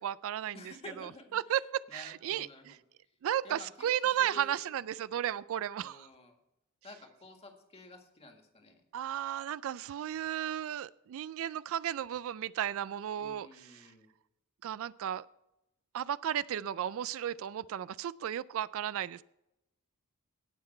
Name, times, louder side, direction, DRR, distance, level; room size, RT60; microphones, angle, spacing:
voice 1, 0.0-0.6 1.0-2.8 3.2-6.1 8.9-13.5 14.6-15.3 15.9-19.2, right 10 dB, 65° right, 18 dB, 0.3 m, -34 dB
voice 2, 0.5-1.4 1.9-2.8 3.4-3.9 4.2-4.6 5.8-6.4 6.8-8.8 13.2-14.1, left 2 dB, 30° left, 4 dB, 1.9 m, -51 dB
17.5 x 5.9 x 4.4 m, 0.88 s
head